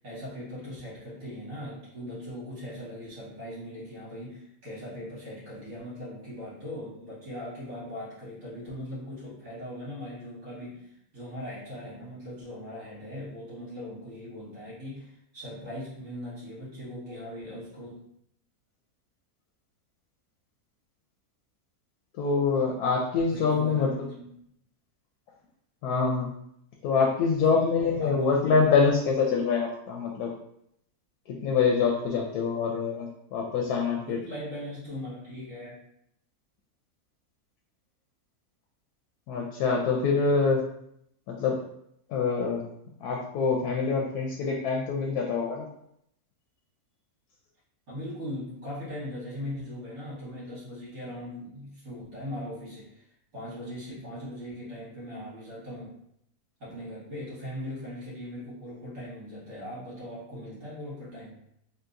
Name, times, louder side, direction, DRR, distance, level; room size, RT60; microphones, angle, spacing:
voice 1, 0.0-18.0 23.3-24.3 27.4-27.6 28.0-28.6 33.9-35.8 47.9-53.1 53.3-56.0 56.6-61.4, equal, 60° right, -9 dB, 1.8 m, -39 dB
voice 2, 22.2-24.1 25.8-26.3 26.8-30.3 31.4-34.2 39.3-40.6 41.3-41.6 42.1-42.6 43.0-45.7, left 5 dB, 90° left, -1 dB, 1.1 m, -25 dB
3.9 x 2.3 x 2.5 m, 0.74 s
omnidirectional pair, 1.6 m